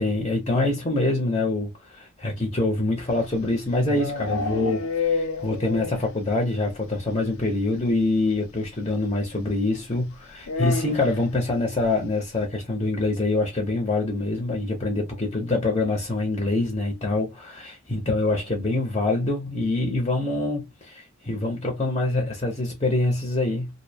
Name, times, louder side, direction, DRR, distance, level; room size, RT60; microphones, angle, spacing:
voice 1, 0.0-23.7, left 2 dB, 25° left, 0.7 m, -25 dB
sound 1, 3.2-6.2 6.5-6.6 6.9-7.0 7.2-7.4 8.6-8.7 10.4-11.3, left 4 dB, 85° left, 0.5 m, -29 dB
2.6 x 2.0 x 2.6 m
head